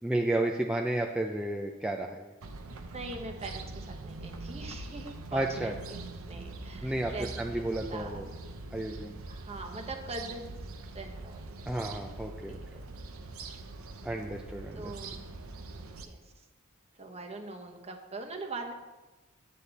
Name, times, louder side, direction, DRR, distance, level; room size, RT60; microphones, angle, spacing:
voice 1, 0.0-2.3 5.3-5.7 6.8-8.2 8.7-9.2 11.7-12.6 14.0-14.9, right 1 dB, 5° right, 1 dB, 0.5 m, -32 dB
sound 1, 2.4-16.1, right 3 dB, 75° right, 0.8 m, -43 dB
voice 2, 2.9-7.4 7.9-8.2 9.3-11.7 12.4-12.8 14.7-15.2 16.0-16.2 17.0-18.7, right 2 dB, 30° right, 3 dB, 1.1 m, -42 dB
9.8 x 8.3 x 4.1 m, 1.2 s
head